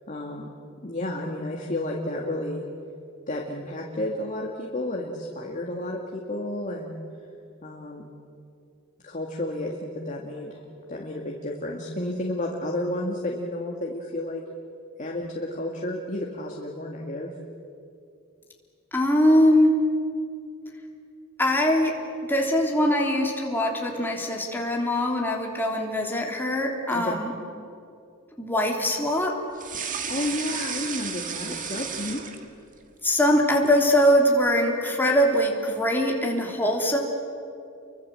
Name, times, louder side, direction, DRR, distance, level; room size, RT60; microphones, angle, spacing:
voice 1, 0.1-0.5 0.8-2.6 3.3-7.0 7.6-8.1 9.0-10.6 10.9-14.4 15.0-17.3 26.9-27.2 30.1-32.2, left 1 dB, 35° left, -1 dB, 2.1 m, -31 dB
voice 2, 18.9-19.8 21.4-21.9 22.3-27.3 28.4-29.4 33.0-37.0, equal, 10° left, -1 dB, 3.5 m, -22 dB
sound 1, 29.6-32.8 33.1-33.8, right 6 dB, 40° right, 1.8 m, -33 dB
30.0 x 23.5 x 7.8 m, 2.5 s
head